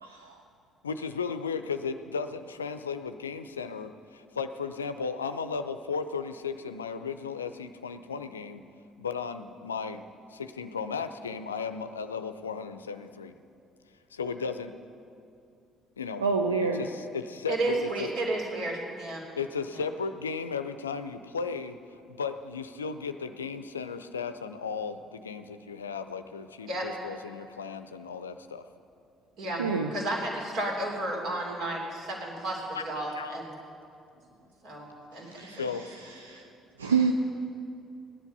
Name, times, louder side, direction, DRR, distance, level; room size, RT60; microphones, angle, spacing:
voice 1, 0.0-0.3 16.2-16.8 29.6-29.9 35.3-35.6 36.3-36.4 36.8-37.1, right 5 dB, 85° right, 3 dB, 0.5 m, -27 dB
voice 2, 0.8-8.6 9.0-10.0 10.3-13.3 14.1-14.7 16.0-16.2 16.6-18.1 19.4-21.8 22.1-28.7 32.7-32.8 33.2-33.4 35.6-35.9, left 5 dB, 85° left, 10 dB, 0.4 m, -35 dB
voice 3, 17.5-19.2 19.7-19.8 26.7-26.9 29.4-29.6 29.9-33.5 34.6-35.3, right 2 dB, 60° right, -1 dB, 3.2 m, -32 dB
16.5 x 10.5 x 5.4 m, 2.5 s
figure-of-eight pair, 50°, 0 cm